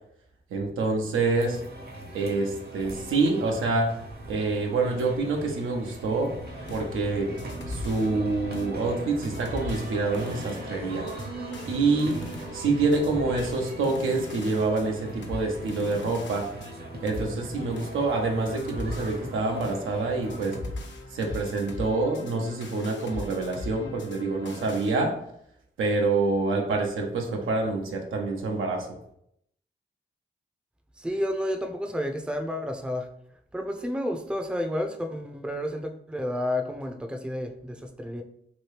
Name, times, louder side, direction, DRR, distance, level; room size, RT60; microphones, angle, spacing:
voice 1, 0.5-1.6 2.1-3.9 4.3-6.4 6.7-7.4 7.7-11.1 11.7-12.2 12.5-16.5 17.0-20.6 21.1-25.1 25.8-28.9, right 3 dB, 85° right, 2 dB, 0.6 m, -26 dB
sound 1, 1.3-20.6, right 2 dB, 50° right, 0.8 m, -40 dB
sound 2, 6.4-25.0, left 2 dB, 65° left, 0.7 m, -41 dB
voice 2, 31.0-33.1 33.5-38.2, left 1 dB, 5° right, 4 dB, 0.5 m, -31 dB
2.9 x 2.7 x 3.3 m, 0.72 s
cardioid pair, 50°, 20 cm